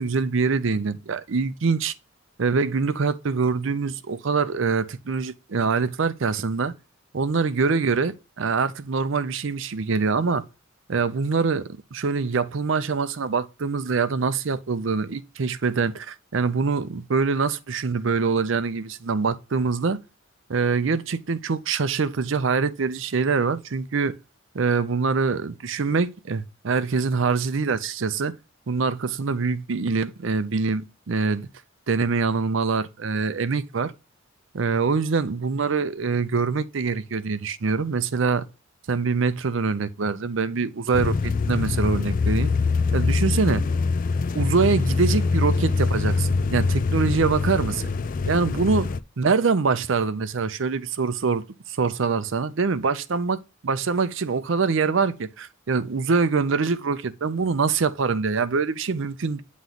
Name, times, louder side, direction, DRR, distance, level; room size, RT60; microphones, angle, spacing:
voice 1, 0.0-1.9 2.4-6.7 7.1-10.4 10.9-20.0 20.5-24.2 24.5-28.3 28.7-31.5 31.9-33.9 34.5-38.5 38.9-42.5 42.9-43.7 44.4-47.8 48.3-53.4 53.6-59.4, right 4 dB, 60° right, 0.5 m, -24 dB
sound 1, 40.9-49.0, left 4 dB, 40° left, 0.3 m, -24 dB
9.2 x 3.1 x 3.8 m
head